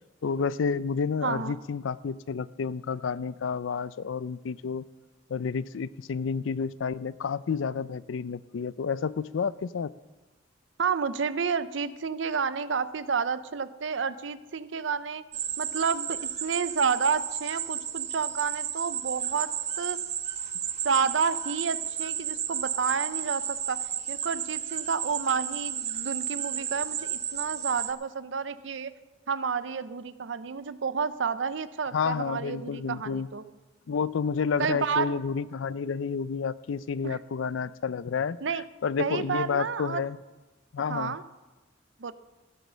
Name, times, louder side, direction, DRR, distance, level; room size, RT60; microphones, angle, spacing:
voice 1, 0.2-4.8 5.3-9.9 31.9-33.3 33.9-38.4 38.8-40.2 40.7-41.2, left 5 dB, 90° left, 18 dB, 0.4 m, -30 dB
voice 2, 1.2-1.5 10.8-15.2 15.6-19.5 19.8-20.0 20.8-23.8 24.1-28.9 29.3-33.4 34.6-35.1 37.0-37.2 38.4-38.6 39.0-40.0 40.9-41.2 42.0-42.1, right 5 dB, 75° right, 14 dB, 0.6 m, -30 dB
sound 1, 15.3-27.9, right 9 dB, 35° right, 0.8 m, -33 dB
14.5 x 8.2 x 6.2 m, 1.2 s
head